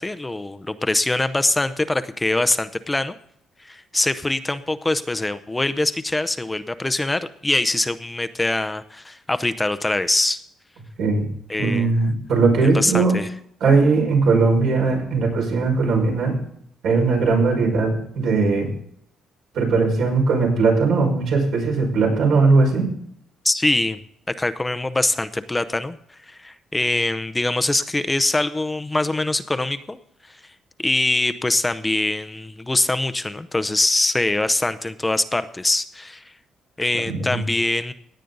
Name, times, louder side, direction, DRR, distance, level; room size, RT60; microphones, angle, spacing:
voice 1, 0.0-3.1 3.6-10.4 11.5-11.9 12.7-13.3 23.4-24.0 24.4-26.0 26.3-30.0 30.3-30.4 30.8-36.2 36.8-37.9, left 2 dB, 15° left, 12 dB, 0.6 m, -23 dB
voice 2, 11.6-13.2 13.6-16.4 16.8-18.7 19.5-22.9 37.1-37.4, right 4 dB, 80° right, 0 dB, 5.4 m, -19 dB
17.0 x 9.2 x 3.9 m, 0.67 s
cardioid pair, 120°, 0 cm